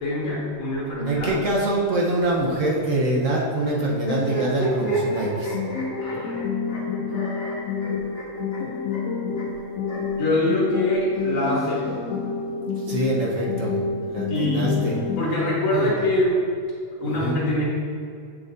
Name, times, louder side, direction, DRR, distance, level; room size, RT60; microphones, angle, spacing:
voice 1, 0.0-1.4 6.0-6.4 6.7-6.9 10.2-11.8 14.3-14.8 15.2-16.4 17.0-17.6, left 1 dB, 70° left, -7 dB, 2.1 m, -24 dB
voice 2, 1.1-5.6 12.8-13.8 14.1-15.0 15.7-15.9 17.0-17.4, right 2 dB, 55° right, -3 dB, 0.9 m, -24 dB
sound 1, 4.0-10.2 11.1-12.3, right 1 dB, 30° left, 1.4 m, -31 dB
sound 2, 5.4-15.4, left 5 dB, 90° left, 0.7 m, -28 dB
7.6 x 6.4 x 2.6 m, 2.3 s
omnidirectional pair, 2.4 m